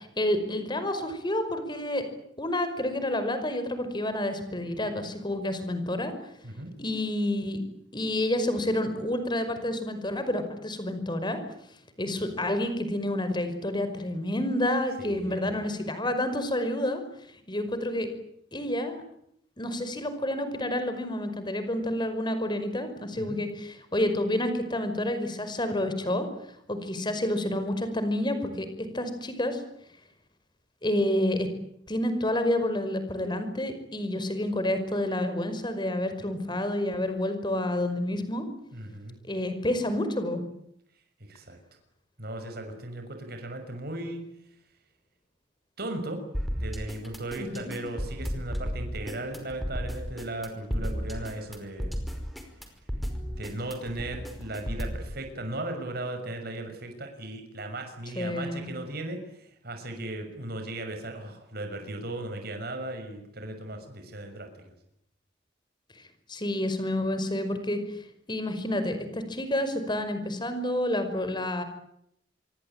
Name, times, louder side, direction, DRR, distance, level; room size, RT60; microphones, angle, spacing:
voice 1, 0.0-2.0 2.4-6.1 6.8-7.6 7.9-11.4 12.0-17.0 17.5-18.1 18.5-19.0 19.6-26.3 26.7-28.7 28.9-29.6 30.8-31.5 31.9-38.5 39.3-40.4 47.4-47.8 58.2-58.7 66.3-67.8 68.3-71.6, left 1 dB, 25° left, 9 dB, 5.4 m, -29 dB
voice 2, 15.0-15.7 23.2-23.4 38.7-39.2 41.3-41.6 42.2-44.2 45.8-46.2 46.5-51.9 53.2-64.5, right 1 dB, 55° right, 5 dB, 6.3 m, -37 dB
sound 1, 46.3-55.1, equal, ahead, 5.1 m, -33 dB
27.0 x 23.5 x 9.0 m, 0.73 s
head